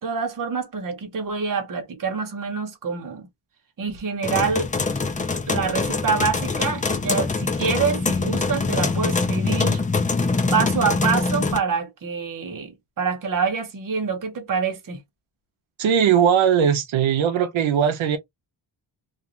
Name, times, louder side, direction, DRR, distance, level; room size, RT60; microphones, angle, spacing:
voice 1, 0.0-3.3 3.8-4.7 5.3-9.8 10.5-15.0, right 5 dB, 45° right, 0.9 m, -26 dB
sound 1, 4.2-11.6, left 3 dB, 20° left, 0.3 m, -24 dB
voice 2, 15.8-18.2, right 8 dB, 80° right, 0.7 m, -19 dB
2.5 x 2.4 x 2.9 m
wide cardioid pair, 170°, 47 cm